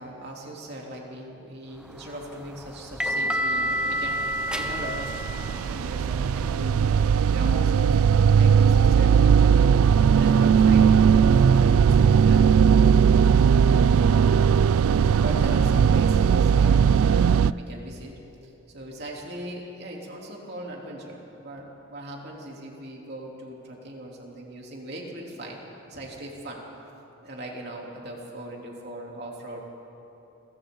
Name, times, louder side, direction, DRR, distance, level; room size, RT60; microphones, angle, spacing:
voice 1, 0.0-9.7 10.1-12.5 12.8-14.2 15.2-18.1 18.4-25.6 25.9-26.6 27.2-29.6, right 1 dB, 50° right, -2 dB, 3.4 m, -39 dB
sound 1, 1.9-6.7, equal, 5° right, 0.8 m, -30 dB
sound 2, 4.3-17.5, right 7 dB, 80° right, 0.4 m, -18 dB
29.0 x 23.0 x 4.0 m, 2.9 s
head